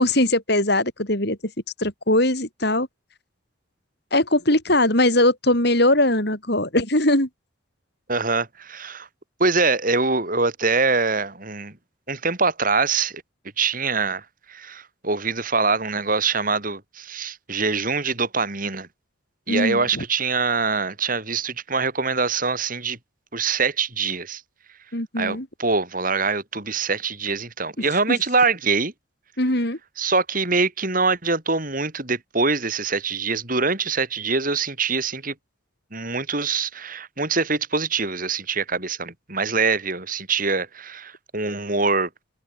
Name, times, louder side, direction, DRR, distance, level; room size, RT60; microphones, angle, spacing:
voice 1, 0.0-1.4 1.8-2.9 4.1-7.3 19.5-20.0 24.9-25.5 27.8-27.9 29.4-29.8, left 1 dB, 55° left, 6.2 m, -20 dB
voice 2, 8.1-9.1 9.4-11.7 12.1-13.1 13.6-18.9 19.5-23.0 23.3-24.4 25.2-28.9 30.0-35.3 35.9-42.1, right 4 dB, 45° right, 4.6 m, -24 dB
head